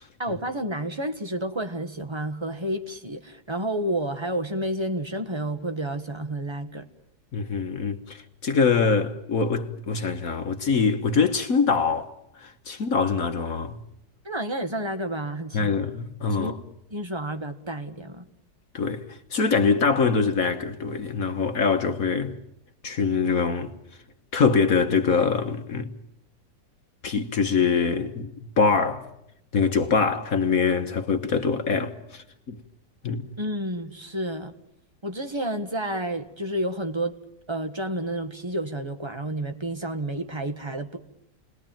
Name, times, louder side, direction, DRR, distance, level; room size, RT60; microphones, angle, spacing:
voice 1, 0.2-6.9 14.2-15.7 16.3-16.6 16.9-18.3 33.4-34.5 35.0-37.2 37.5-41.0, right 1 dB, 15° right, 1.4 m, -30 dB
voice 2, 7.3-12.1 12.4-13.8 15.5-16.6 18.7-19.0 19.3-22.4 22.8-23.7 24.3-25.9 27.0-29.1 29.5-32.6 33.0-33.4, left 5 dB, 50° left, 1.6 m, -24 dB
29.5 x 20.5 x 9.0 m
omnidirectional pair, 2.0 m